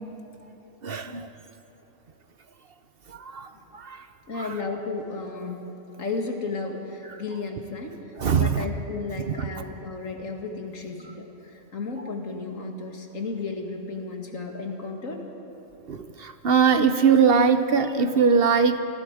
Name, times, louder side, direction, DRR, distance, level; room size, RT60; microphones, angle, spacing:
voice 1, 0.8-1.3 3.1-4.0 4.4-4.5 8.2-8.7 9.3-9.5 15.9-18.8, right 6 dB, 50° right, 9 dB, 0.9 m, -21 dB
voice 2, 4.3-5.7 6.0-15.2, left 3 dB, 80° left, 2 dB, 2.4 m, -33 dB
27.5 x 19.5 x 4.9 m, 3.0 s
omnidirectional pair, 1.4 m